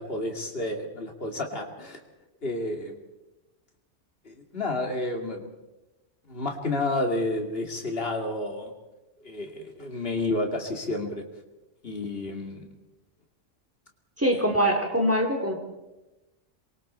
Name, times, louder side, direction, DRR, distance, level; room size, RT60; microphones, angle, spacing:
voice 1, 0.0-2.0 2.4-3.0 4.3-5.5 6.3-8.7 9.2-11.2 11.8-12.6 14.3-14.4, left 2 dB, 50° left, 2 dB, 2.7 m, -30 dB
voice 2, 14.2-15.5, equal, 10° right, 1 dB, 3.4 m, -23 dB
27.5 x 23.0 x 4.4 m, 1.0 s
omnidirectional pair, 1.3 m